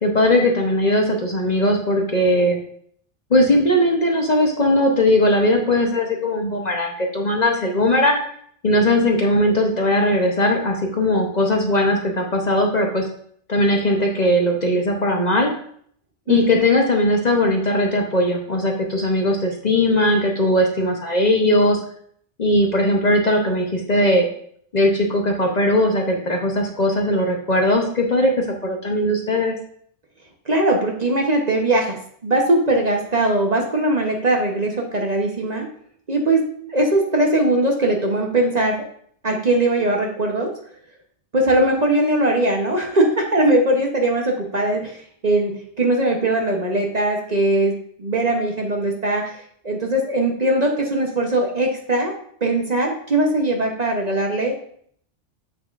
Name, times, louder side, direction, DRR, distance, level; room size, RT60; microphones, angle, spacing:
voice 1, 0.0-2.6 3.3-8.2 8.6-13.0 13.5-15.5 16.3-21.8 22.4-24.3 24.7-29.5, left 1 dB, 40° left, 1 dB, 0.8 m, -19 dB
voice 2, 30.5-35.7 36.1-38.9 39.2-40.5 41.3-49.4 49.6-52.1 52.4-54.6, right 1 dB, 40° right, 1 dB, 0.9 m, -20 dB
7.5 x 6.6 x 2.5 m, 0.62 s
omnidirectional pair, 1.2 m